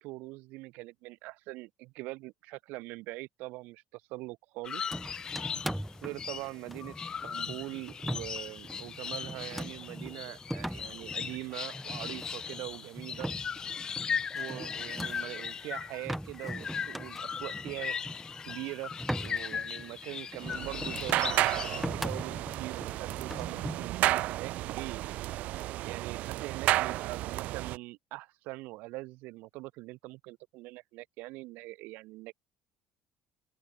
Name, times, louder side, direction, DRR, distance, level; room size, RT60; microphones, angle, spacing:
voice 1, 0.0-4.8 6.0-6.9 7.2-13.3 14.3-17.9 18.5-18.9 19.2-25.0 25.8-32.3, right 21 dB, 70° right, 4.2 m, -42 dB
sound 1, 4.6-21.9, left 7 dB, 25° left, 2.1 m, -38 dB
sound 2, 4.9-23.9, equal, ahead, 0.7 m, -41 dB
sound 3, 20.4-27.8, right 16 dB, 50° right, 2.2 m, -32 dB
open air
cardioid pair, 175°, 3 cm